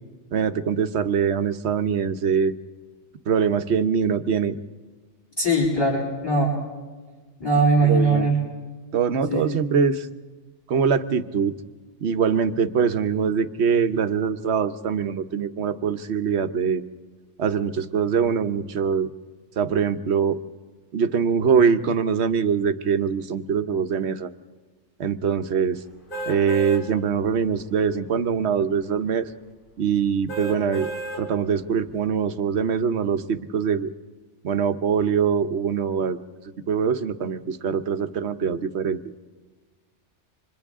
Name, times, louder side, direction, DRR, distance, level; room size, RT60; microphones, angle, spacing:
voice 1, 0.3-2.5 3.3-4.6 7.8-8.4 8.9-10.1 10.7-11.5 12.0-16.8 17.4-19.1 19.6-20.4 20.9-24.3 25.0-25.8 26.3-29.3 29.8-30.9 31.2-33.9 34.4-36.2 36.7-39.0, right 6 dB, 70° right, 11 dB, 1.2 m, -23 dB
voice 2, 5.4-6.6 7.4-8.3 9.3-9.5, right 2 dB, 20° left, -7 dB, 8.1 m, -20 dB
sound 1, 26.1-26.8 27.4-27.5 30.3-31.2 31.8-31.9, right 2 dB, 50° left, 3.9 m, -32 dB
30.0 x 26.0 x 3.6 m, 1.4 s
omnidirectional pair, 1.2 m